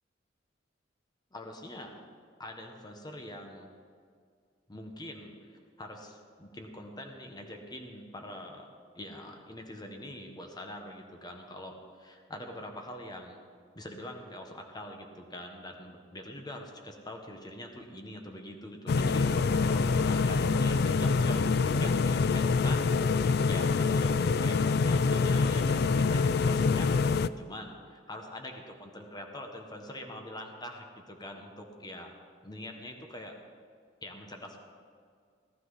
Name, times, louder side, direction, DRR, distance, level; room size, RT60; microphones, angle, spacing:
voice 1, 1.3-2.0 2.4-3.7 4.7-8.7 8.9-13.4 13.7-32.2 32.4-33.3 34.0-34.6, left 1 dB, 20° left, 3 dB, 1.4 m, -44 dB
sound 1, 18.9-27.3, left 4 dB, 60° left, 0.4 m, -25 dB
18.0 x 12.0 x 4.1 m, 2.2 s
head